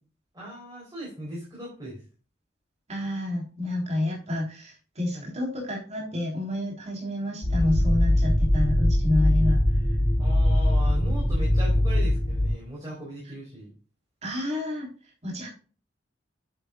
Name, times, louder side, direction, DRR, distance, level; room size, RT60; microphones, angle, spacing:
voice 1, 0.3-2.0 5.1-5.3 10.2-13.7, equal, 20° right, -4 dB, 4.2 m, -38 dB
voice 2, 2.9-9.6 14.2-14.9 15.2-15.5, left 1 dB, 40° right, -3 dB, 3.6 m, -29 dB
sound 1, 7.4-12.5, left 1 dB, 45° left, 3.1 m, -22 dB
10.0 x 8.2 x 2.5 m, 0.36 s
head